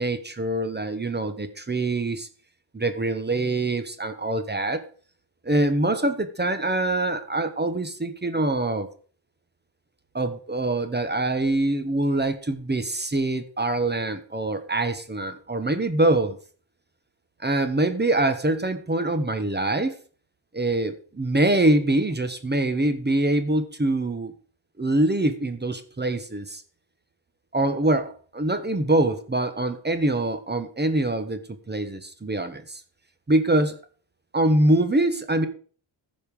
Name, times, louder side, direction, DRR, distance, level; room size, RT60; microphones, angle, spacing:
voice 1, 0.0-2.3 2.7-4.8 5.4-8.9 10.1-16.4 17.4-19.9 20.5-24.3 24.8-26.6 27.5-32.8 33.3-33.8 34.3-35.5, right 2 dB, 20° right, 9 dB, 1.1 m, -24 dB
14.5 x 5.3 x 5.2 m, 0.42 s
wide cardioid pair, 95°, 46 cm